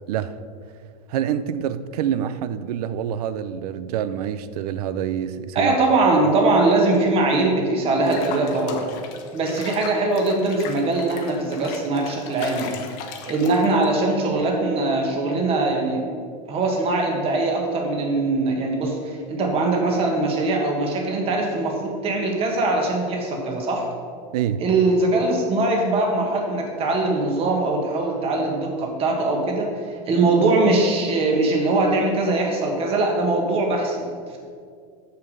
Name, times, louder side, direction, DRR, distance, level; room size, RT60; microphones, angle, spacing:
voice 1, 1.1-5.8 24.3-24.7, right 9 dB, 80° right, 0.5 m, -26 dB
voice 2, 5.5-8.8 9.3-12.8 13.2-16.0 16.5-23.9 24.6-34.4, right 2 dB, 30° right, 1.5 m, -21 dB
Water / Bathtub (filling or washing), 8.1-14.0, left 6 dB, 50° left, 1.0 m, -38 dB
6.8 x 6.7 x 5.3 m
supercardioid pair, 150°, 20 cm